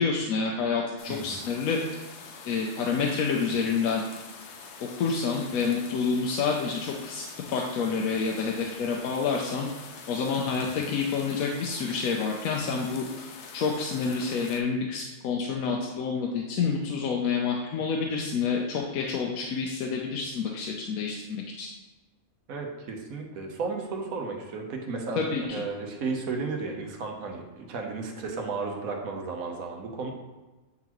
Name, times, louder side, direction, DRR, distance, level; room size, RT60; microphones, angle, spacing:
voice 1, 0.0-2.0 2.4-4.0 5.0-13.2 13.5-21.2 21.6-21.7 25.2-25.4, left 5 dB, 85° left, 0 dB, 1.1 m, -28 dB
sound 1, 1.0-14.6, left 5 dB, 65° left, 0.9 m, -45 dB
voice 2, 1.1-1.4 10.6-10.7 22.5-30.1, right 4 dB, 90° right, 2 dB, 1.3 m, -34 dB
8.3 x 3.9 x 3.0 m, 1.2 s
omnidirectional pair, 1.4 m